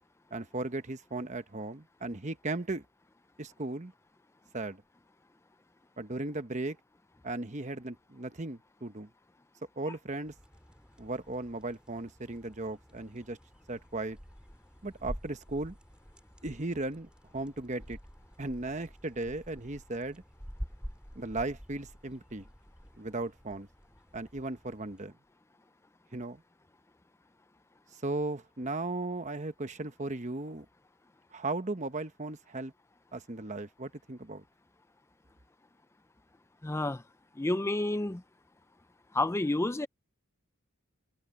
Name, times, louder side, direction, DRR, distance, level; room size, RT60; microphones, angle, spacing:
voice 1, 0.3-2.8 3.4-3.9 4.5-4.8 6.0-6.8 7.2-9.1 9.8-10.3 11.0-13.4 13.7-14.2 14.8-15.8 16.4-18.0 18.4-20.2 21.1-22.5 23.0-23.7 24.1-25.1 26.1-26.4 27.9-30.7 31.3-32.7 33.1-34.4, right 2 dB, 35° right, 1.1 m, -36 dB
sound 1, 10.2-25.1, equal, 5° right, 3.5 m, -48 dB
voice 2, 36.6-37.0 37.4-38.2 39.1-39.9, left 2 dB, 10° left, 0.4 m, -29 dB
head